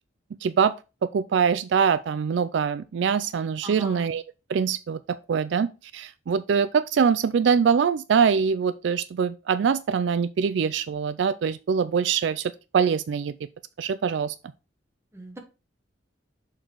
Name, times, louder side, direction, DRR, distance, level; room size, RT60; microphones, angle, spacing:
voice 1, 0.4-0.7 1.0-4.2 4.5-13.4 13.8-14.4, right 6 dB, 70° right, 0.3 m, -23 dB
voice 2, 3.6-4.1 15.1-15.4, right 2 dB, 15° right, 1.3 m, -40 dB
6.6 x 3.9 x 4.5 m
head